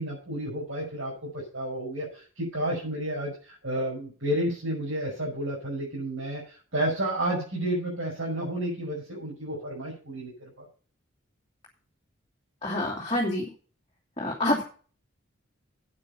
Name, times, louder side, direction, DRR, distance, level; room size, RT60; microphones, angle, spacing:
voice 1, 0.0-10.6, right 1 dB, 80° right, -6 dB, 5.9 m, -31 dB
voice 2, 12.6-13.5 14.2-14.6, left 1 dB, 25° left, -4 dB, 2.5 m, -27 dB
9.5 x 8.8 x 5.5 m, 0.39 s
head